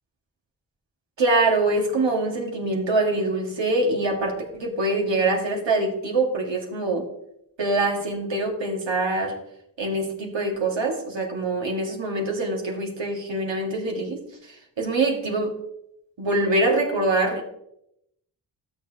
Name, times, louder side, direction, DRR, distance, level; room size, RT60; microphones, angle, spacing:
voice 1, 1.2-7.1 7.6-9.4 9.8-15.6 16.2-17.5, right 2 dB, 65° right, 1 dB, 2.1 m, -24 dB
12.5 x 7.1 x 3.0 m, 0.80 s
cardioid pair, 45°, 47 cm